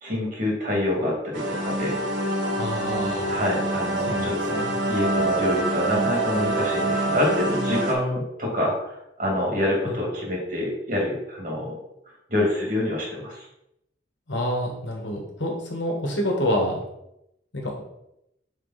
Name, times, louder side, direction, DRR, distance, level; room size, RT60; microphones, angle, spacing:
voice 1, 0.0-2.0 3.3-11.8 12.3-13.5, left 1 dB, 45° right, -2 dB, 2.2 m, -26 dB
sound 1, 1.3-7.9, right 2 dB, 75° right, 1.3 m, -26 dB
voice 2, 2.6-3.4 4.1-4.7 9.9-10.0 14.3-16.8 17.5-17.8, equal, 75° left, 0 dB, 1.5 m, -27 dB
5.0 x 4.9 x 4.1 m, 0.82 s
head